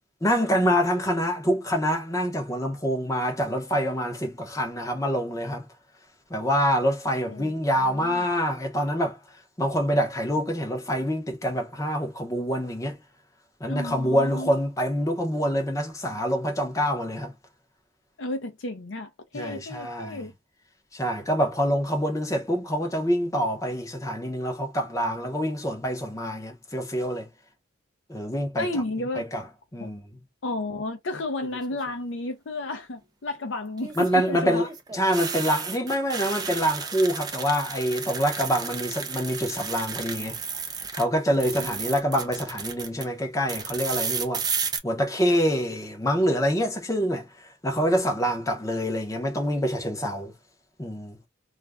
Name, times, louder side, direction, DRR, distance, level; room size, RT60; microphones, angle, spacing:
voice 1, 0.2-5.7 6.3-9.2 9.6-13.0 13.6-17.3 19.3-20.2 20.9-27.3 28.1-28.8 29.2-29.4 29.7-30.0 34.0-40.4 40.9-44.4 44.8-50.3 50.8-51.2, equal, 15° left, 0.7 m, -26 dB
voice 2, 7.3-8.2 13.7-14.5 18.2-20.3 28.6-29.3 29.8-29.9 30.4-34.7 41.6-41.8, left 2 dB, 65° left, 0.6 m, -32 dB
sound 1, 31.4-31.9 33.8-41.0 41.3-43.0 43.5-44.8, right 6 dB, 20° right, 0.4 m, -33 dB
2.4 x 2.2 x 3.4 m
head